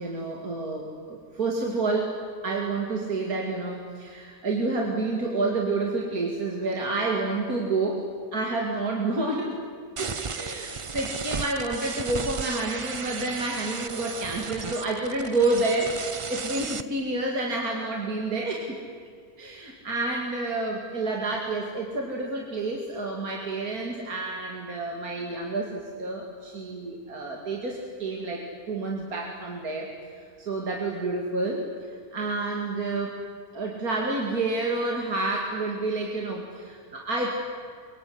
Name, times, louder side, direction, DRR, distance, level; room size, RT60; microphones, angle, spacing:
voice 1, 0.0-2.2 2.4-9.6 10.0-18.8 19.4-33.1 33.5-37.3, right 2 dB, 70° right, 0 dB, 3.1 m, -29 dB
sound 1, 10.0-16.8, right 5 dB, 50° right, 0.3 m, -34 dB
24.5 x 23.5 x 9.7 m, 2.1 s
omnidirectional pair, 1.6 m